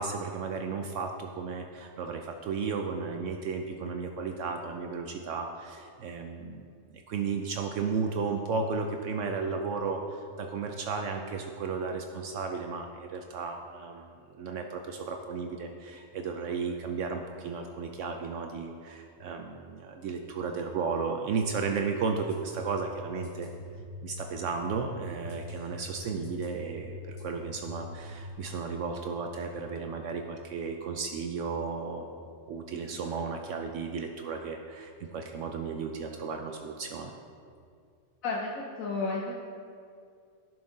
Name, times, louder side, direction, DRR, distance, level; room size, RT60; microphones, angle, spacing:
voice 1, 0.0-6.6 7.1-14.1 14.4-23.5 24.0-32.1 32.5-37.1, right 5 dB, 70° right, 4 dB, 0.9 m, -34 dB
sound 1, 22.3-28.3, left 2 dB, 40° left, 1.3 m, -44 dB
voice 2, 38.2-39.4, left 3 dB, 85° left, -1 dB, 1.2 m, -32 dB
11.0 x 6.1 x 3.8 m, 2.3 s
omnidirectional pair, 1.4 m